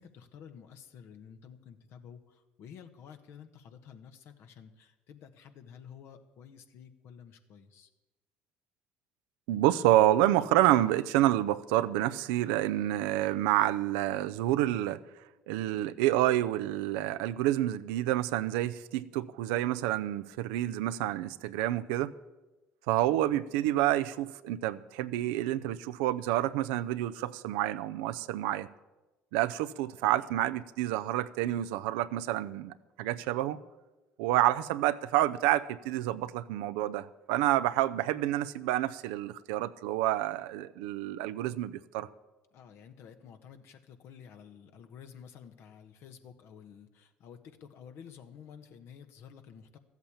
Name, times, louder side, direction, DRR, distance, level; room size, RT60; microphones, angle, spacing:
voice 1, 0.0-7.9 42.5-49.8, left 7 dB, 65° left, 7 dB, 1.3 m, -51 dB
voice 2, 9.5-15.0 15.5-22.1 22.9-28.7 29.3-33.6 34.2-42.1, right 14 dB, 80° right, 12 dB, 0.5 m, -28 dB
13.5 x 8.2 x 8.6 m, 1.1 s
hypercardioid pair, 65°, 5 cm